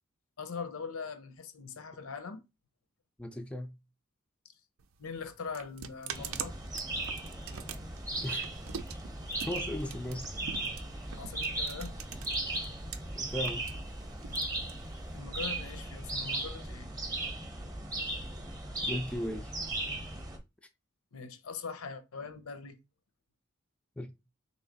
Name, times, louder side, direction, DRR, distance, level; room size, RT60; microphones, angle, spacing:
voice 1, 0.4-2.4 5.0-6.5 11.2-11.9 15.1-16.9 21.1-22.7, left 5 dB, 85° left, 0.7 m, -41 dB
voice 2, 3.2-3.7 8.2-8.5 9.5-10.3 13.1-13.6 18.8-19.5 24.0-24.1, equal, 5° left, 0.3 m, -36 dB
sound 1, 4.8-13.0 13.3-15.2, right 7 dB, 75° right, 0.5 m, -44 dB
sound 2, 6.1-20.4, right 2 dB, 20° right, 0.7 m, -37 dB
3.1 x 2.8 x 3.9 m
head